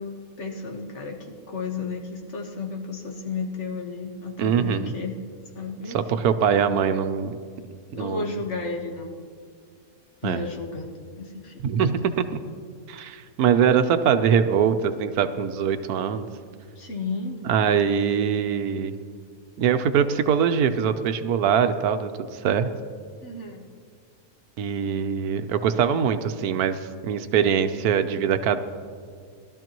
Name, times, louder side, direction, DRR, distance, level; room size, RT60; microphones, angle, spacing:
voice 1, 0.0-5.2 5.5-6.3 6.6-6.8 7.9-9.1 10.2-11.6 16.7-17.4 23.2-23.7, left 4 dB, 50° left, 1 dB, 1.6 m, -33 dB
voice 2, 4.4-4.9 5.9-7.3 7.9-8.3 10.2-10.4 11.6-12.2 12.9-16.3 17.4-19.0 19.6-22.7 24.6-28.6, right 7 dB, 80° right, 10 dB, 1.2 m, -23 dB
20.0 x 12.5 x 3.0 m, 2.1 s
omnidirectional pair, 1.6 m